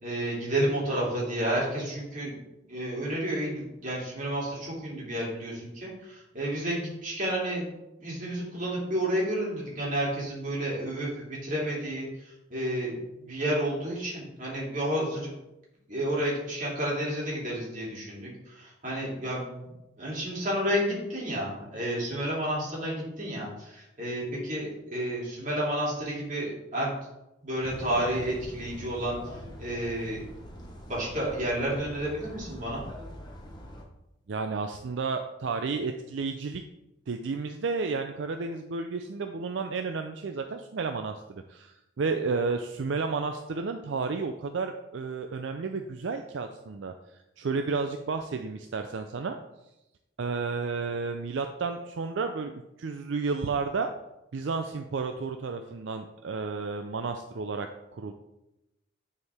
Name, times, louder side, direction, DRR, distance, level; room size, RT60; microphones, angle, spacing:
voice 1, 0.0-2.4 2.7-7.7 8.0-12.9 13.2-15.3 15.9-19.7 20.0-26.9 27.4-29.2 29.6-30.2 30.9-32.8, right 1 dB, 40° right, -5 dB, 2.6 m, -31 dB
sound 1, 27.6-33.8, equal, 20° left, 1.1 m, -43 dB
voice 2, 34.3-36.6 37.1-49.4 50.2-52.5 52.8-53.9 54.3-58.1, right 4 dB, 70° right, 6 dB, 0.4 m, -32 dB
9.7 x 4.6 x 3.5 m, 0.92 s
head